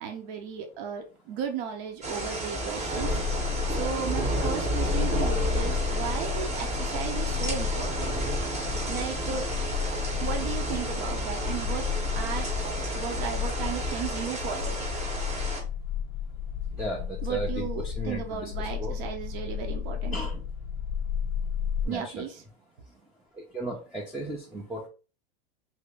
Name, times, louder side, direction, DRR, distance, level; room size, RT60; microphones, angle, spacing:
voice 1, 0.0-3.2 3.7-8.1 8.9-9.4 10.2-11.8 12.1-12.5 12.9-14.8 17.2-20.1 21.9-22.4, right 7 dB, 60° right, 4 dB, 0.9 m, -35 dB
sound 1, 2.0-15.6, right 1 dB, 20° right, 0.9 m, -31 dB
sound 2, 3.0-21.8, left 8 dB, 45° left, 0.6 m, -33 dB
voice 2, 16.7-18.9 20.1-20.4 21.8-22.3 23.3-24.9, right 1 dB, ahead, -2 dB, 0.5 m, -36 dB
2.9 x 2.8 x 3.4 m, 0.34 s
supercardioid pair, 125°, 32 cm